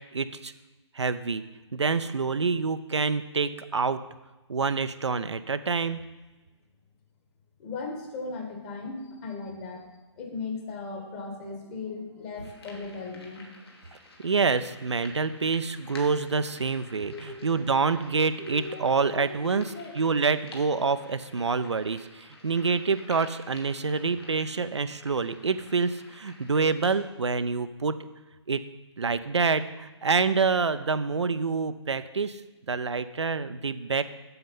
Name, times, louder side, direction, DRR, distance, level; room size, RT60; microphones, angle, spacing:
voice 1, 0.1-0.5 0.9-1.4 1.7-4.0 4.5-6.0 14.2-28.0 28.5-28.6 29.0-32.4 32.7-34.0, right 4 dB, 70° right, 11 dB, 0.6 m, -27 dB
voice 2, 7.6-9.9 10.2-13.5 17.1-17.5 18.4-19.9, left 4 dB, 25° left, 2 dB, 1.7 m, -37 dB
sound 1, 12.4-26.9, left 2 dB, 55° left, 2.4 m, -50 dB
7.9 x 7.7 x 5.5 m, 1.2 s
figure-of-eight pair, 130°, 15 cm